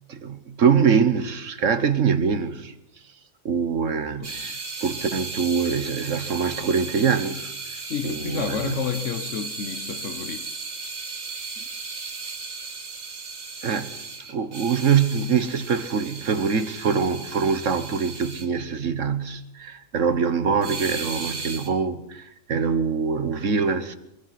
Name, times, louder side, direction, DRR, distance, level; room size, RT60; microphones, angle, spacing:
voice 1, 0.1-2.7 3.4-7.5 8.0-8.8 13.6-14.0 14.3-24.0, right 6 dB, 75° right, 1.6 m, -24 dB
sound 1, 4.2-18.5 20.6-21.7, right 4 dB, 60° right, 2.2 m, -35 dB
voice 2, 7.9-10.6, left 7 dB, 75° left, 1.3 m, -30 dB
23.5 x 22.5 x 5.9 m
omnidirectional pair, 1.3 m